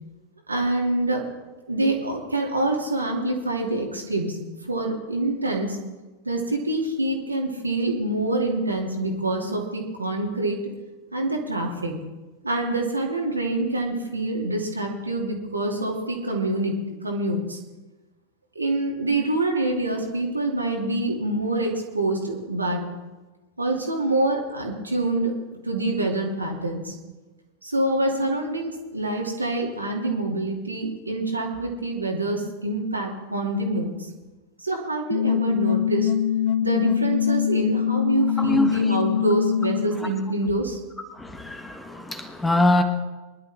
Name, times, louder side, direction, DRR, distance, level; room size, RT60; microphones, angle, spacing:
voice 1, 0.5-1.2 1.7-4.4 4.7-5.8 6.2-10.6 11.1-11.9 12.4-16.7 17.0-17.6 18.5-22.8 23.6-25.3 25.6-26.9 27.6-34.1 34.6-36.1 36.6-40.8, right 2 dB, 80° right, 0 dB, 2.6 m, -26 dB
sound 1, 35.1-40.1, left 10 dB, 50° left, 1.0 m, -23 dB
voice 2, 38.4-38.9 40.0-40.1 41.1-42.8, left 1 dB, 10° left, 6 dB, 1.5 m, -24 dB
23.0 x 11.5 x 3.6 m, 1.2 s
figure-of-eight pair, 90°, 0 cm